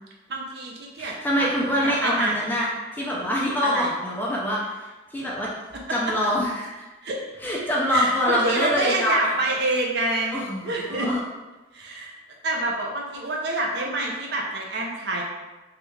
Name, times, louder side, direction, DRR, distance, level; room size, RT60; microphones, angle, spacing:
voice 1, 0.3-1.5 1.8-2.5 3.6-3.9 7.0-7.2 7.9-11.1 11.7-12.2 12.4-15.2, right 2 dB, 60° right, -1 dB, 0.5 m, -27 dB
voice 2, 1.0-4.6 5.1-5.5 5.9-6.7 7.4-9.6 10.3-11.2, equal, 10° left, -5 dB, 0.5 m, -25 dB
3.2 x 2.4 x 3.1 m, 1.1 s
head